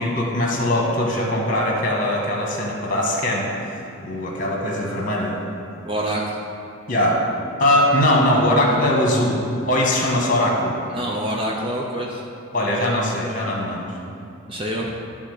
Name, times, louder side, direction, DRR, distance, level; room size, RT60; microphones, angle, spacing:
voice 1, 0.0-5.4 6.9-7.2 7.6-10.8 12.5-13.9, left 1 dB, 40° left, -1 dB, 1.4 m, -21 dB
voice 2, 5.8-6.2 10.9-12.2 14.5-14.9, right 1 dB, 25° right, -1 dB, 0.6 m, -26 dB
11.0 x 3.7 x 6.5 m, 2.8 s
head